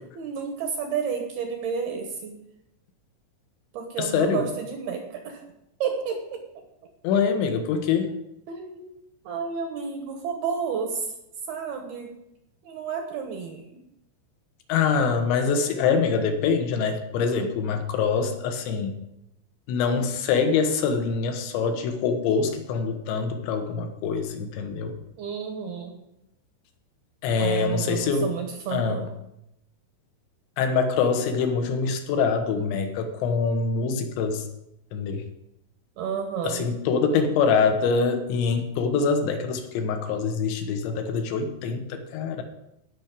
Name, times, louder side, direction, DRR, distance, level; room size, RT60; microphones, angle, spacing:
voice 1, 0.2-2.4 3.7-5.4 5.8-6.6 8.5-8.9 9.2-11.1 11.5-12.1 12.6-13.8 25.2-26.0 27.4-29.1 36.0-36.7, right 6 dB, 75° right, 3 dB, 2.5 m, -31 dB
voice 2, 4.0-4.4 7.0-8.1 14.7-19.0 19.7-25.0 27.2-28.3 28.7-29.0 30.6-34.5 34.9-35.2 36.4-42.4, left 5 dB, 75° left, 6 dB, 3.2 m, -24 dB
17.5 x 6.1 x 5.2 m, 0.83 s
omnidirectional pair, 5.7 m